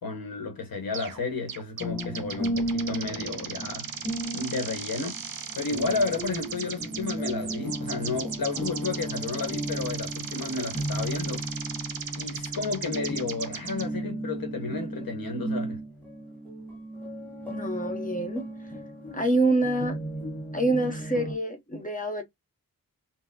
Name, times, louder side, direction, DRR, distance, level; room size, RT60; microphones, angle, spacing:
voice 1, 0.0-3.9 4.3-5.2 5.5-11.5 12.1-15.8, left 4 dB, 75° left, 1.0 m, -32 dB
sound 1, 0.9-1.2 1.5-13.9, right 7 dB, 70° right, 0.7 m, -37 dB
sound 2, 1.8-21.3, right 1 dB, 5° left, 1.5 m, -35 dB
voice 2, 17.5-18.4 19.1-20.0 20.5-22.2, right 2 dB, 20° left, 0.8 m, -26 dB
4.0 x 2.0 x 2.6 m
wide cardioid pair, 140°, 36 cm